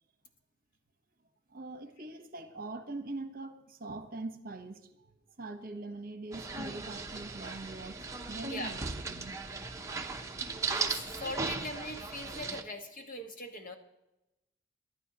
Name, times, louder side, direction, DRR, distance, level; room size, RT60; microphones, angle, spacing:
voice 1, 1.5-9.3, right 2 dB, 45° right, 1.1 m, -43 dB
sound 1, 6.3-12.6, right 4 dB, 15° right, 0.8 m, -37 dB
voice 2, 10.6-13.7, left 1 dB, 45° left, 1.5 m, -41 dB
24.0 x 11.5 x 3.0 m
head